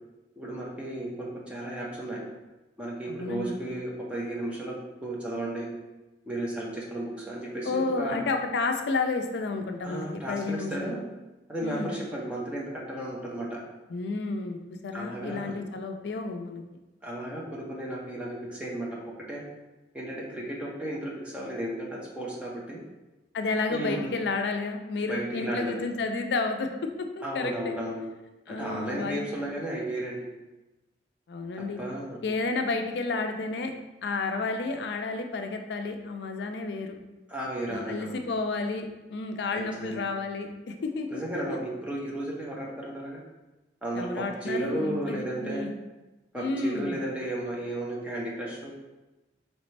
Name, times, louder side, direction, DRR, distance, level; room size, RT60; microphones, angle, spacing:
voice 1, 0.4-2.2 2.8-5.7 6.3-8.2 9.8-11.0 11.5-13.6 14.9-15.5 17.0-19.0 19.3-19.4 19.9-22.8 23.7-24.1 25.1-25.8 27.2-28.0 28.5-30.3 31.8-32.2 37.3-38.1 39.8-40.0 41.1-43.2 43.8-45.7 46.3-48.7, right 1 dB, 5° right, -4 dB, 0.7 m, -34 dB
voice 2, 3.1-3.6 7.6-10.9 11.6-11.9 13.9-14.6 14.8-16.6 23.3-26.7 27.0-27.7 28.5-29.2 31.3-31.8 32.2-33.7 34.0-37.0 37.7-41.2 43.9-45.7 46.3-47.0, left 3 dB, 75° left, 5 dB, 0.4 m, -31 dB
4.1 x 3.2 x 3.2 m, 1.1 s
head